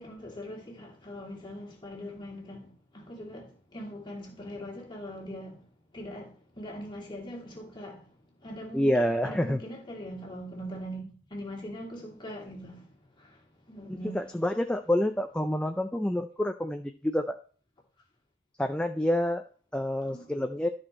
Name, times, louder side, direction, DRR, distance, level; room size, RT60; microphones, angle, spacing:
voice 1, 0.0-8.1 8.4-9.0 9.2-14.4 20.0-20.5, equal, 20° left, 2.3 m, -42 dB
voice 2, 8.7-9.6 13.9-17.4 18.6-19.4 19.7-20.7, left 1 dB, 5° left, 0.4 m, -28 dB
12.5 x 4.5 x 4.3 m
head